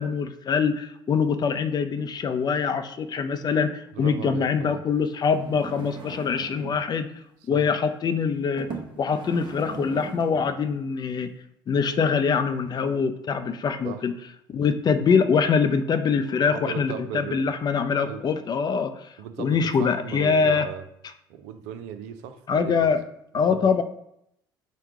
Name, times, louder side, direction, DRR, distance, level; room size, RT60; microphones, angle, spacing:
voice 1, 0.0-7.1 7.5-8.7 9.0-11.3 11.7-14.1 14.5-19.1 19.4-20.7 22.5-23.0 23.3-23.8, left 5 dB, 35° left, 10 dB, 0.5 m, -24 dB
voice 2, 3.9-4.8 7.5-7.6 13.8-14.0 16.5-17.5 18.0-18.2 19.2-20.8 21.3-22.9 23.3-23.8, right 8 dB, 75° right, 9 dB, 0.5 m, -37 dB
sound 1, 5.2-6.9 7.7-7.9 8.6-10.6 11.2-11.3, right 4 dB, 40° right, 0.9 m, -39 dB
4.6 x 2.3 x 4.7 m, 0.77 s
hypercardioid pair, 65°, 12 cm